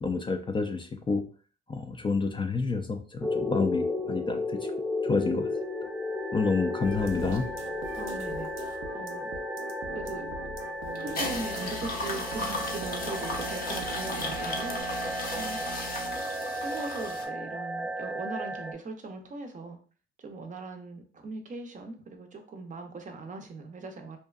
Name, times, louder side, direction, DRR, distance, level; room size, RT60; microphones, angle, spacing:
voice 1, 0.0-1.2 1.7-4.6 5.0-5.5 6.3-7.5, left 4 dB, 25° left, 4 dB, 0.3 m, -29 dB
sound 1, 3.2-18.7, left 1 dB, 5° right, 0.7 m, -34 dB
sound 2, 6.8-14.8, right 4 dB, 90° right, 0.5 m, -43 dB
voice 2, 8.0-9.3 9.7-10.3 11.0-15.0 15.3-15.6 16.6-19.8 20.2-24.2, right 3 dB, 40° right, 5 dB, 0.5 m, -40 dB
sound 3, 11.0-17.3, left 2 dB, 50° left, 0.7 m, -35 dB
2.6 x 2.2 x 2.3 m, 0.39 s
cardioid pair, 90°, 20 cm